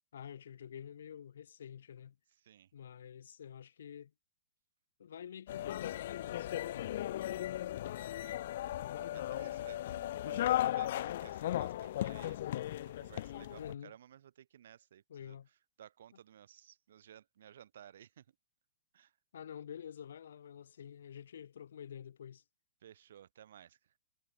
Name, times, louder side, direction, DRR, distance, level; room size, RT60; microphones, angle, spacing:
voice 1, 0.1-2.2 2.7-4.1 5.0-7.0 13.6-13.9 15.1-15.5 19.3-22.4, left 8 dB, 75° left, 6.3 m, -48 dB
sound 1, 5.5-13.7, left 13 dB, 50° left, 0.3 m, -36 dB
voice 2, 7.9-12.4 12.8-15.4 15.8-18.3 18.9-19.2 22.8-23.9, right 10 dB, 65° right, 7.9 m, -57 dB
hypercardioid pair, 170°, 0 cm